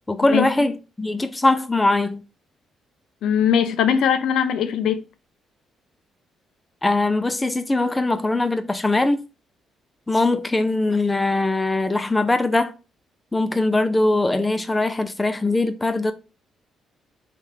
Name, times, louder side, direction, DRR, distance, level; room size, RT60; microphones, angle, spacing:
voice 1, 0.1-2.2 6.8-9.2 10.1-12.7 13.3-16.1, left 2 dB, 15° left, 0.6 m, -21 dB
voice 2, 3.2-5.0, left 8 dB, 75° left, 0.5 m, -20 dB
3.4 x 3.2 x 2.8 m
cardioid pair, 90°, 0 cm